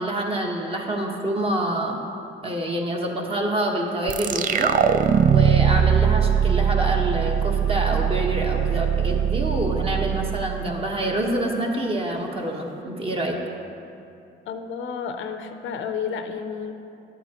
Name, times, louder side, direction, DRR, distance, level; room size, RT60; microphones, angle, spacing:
voice 1, 0.0-2.0 2.4-4.7 5.3-13.4, right 1 dB, 30° right, 0 dB, 1.3 m, -26 dB
sound 1, 4.1-11.4, right 8 dB, 45° right, 0.4 m, -21 dB
voice 2, 14.4-16.7, left 6 dB, 75° left, 7 dB, 0.7 m, -31 dB
11.5 x 8.1 x 3.0 m, 2.7 s
cardioid pair, 90°, 20 cm